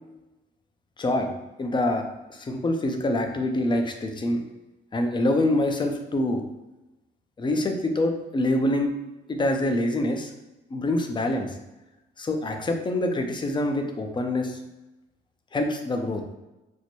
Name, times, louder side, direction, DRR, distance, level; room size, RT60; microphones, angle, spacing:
voice 1, 1.0-1.3 1.6-4.4 4.9-6.4 7.4-8.9 9.3-10.3 10.7-11.6 12.2-14.6 15.5-16.2, left 1 dB, 25° left, 4 dB, 0.5 m, -25 dB
4.4 x 2.1 x 2.8 m, 1.0 s
cardioid pair, 100°, 19 cm